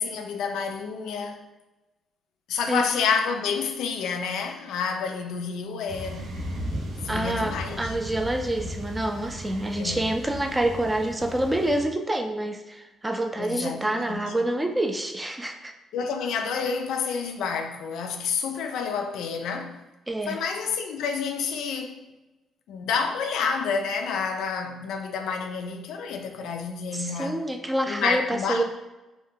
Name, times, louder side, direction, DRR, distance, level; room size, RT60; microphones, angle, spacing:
voice 1, 0.0-1.5 2.5-6.3 7.0-7.9 9.8-10.0 13.4-14.3 15.9-19.8 20.3-22.0 22.7-27.4 27.9-28.6, left 6 dB, 85° left, 0.3 m, -29 dB
sound 1, 5.9-11.8, equal, 70° right, 0.5 m, -36 dB
voice 2, 7.1-15.7 20.1-20.4 26.9-28.6, right 1 dB, 15° right, 0.3 m, -27 dB
2.6 x 2.1 x 3.6 m
cardioid pair, 90°, 0 cm